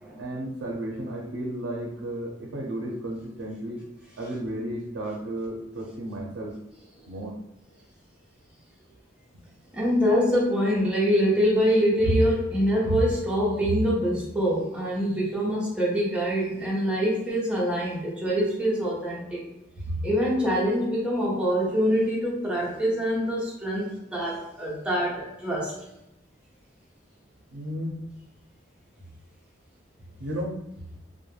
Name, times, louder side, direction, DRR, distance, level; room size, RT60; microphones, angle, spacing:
voice 1, 0.2-3.8 4.2-6.6 7.1-7.4 9.3-9.4 27.5-28.0 30.2-30.5, right 1 dB, 90° right, -2 dB, 0.5 m, -33 dB
voice 2, 9.7-19.4 19.8-25.7, equal, 5° right, -6 dB, 0.7 m, -24 dB
2.2 x 2.1 x 3.1 m, 0.88 s
head